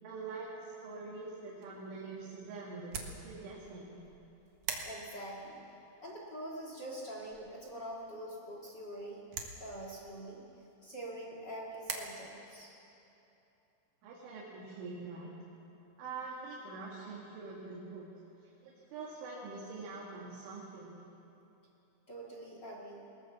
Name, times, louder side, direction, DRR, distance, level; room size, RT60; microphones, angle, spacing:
voice 1, 0.0-4.0 14.0-15.3 16.0-18.1 18.6-21.0, right 3 dB, 90° right, -4 dB, 4.5 m, -44 dB
sound 1, 1.4-12.0, right 6 dB, 60° right, 2.2 m, -47 dB
voice 2, 4.8-5.6 6.0-10.4 10.8-12.8 22.1-23.0, right 1 dB, 45° left, -3 dB, 1.4 m, -44 dB
20.0 x 18.5 x 7.2 m, 2.9 s
omnidirectional pair, 5.4 m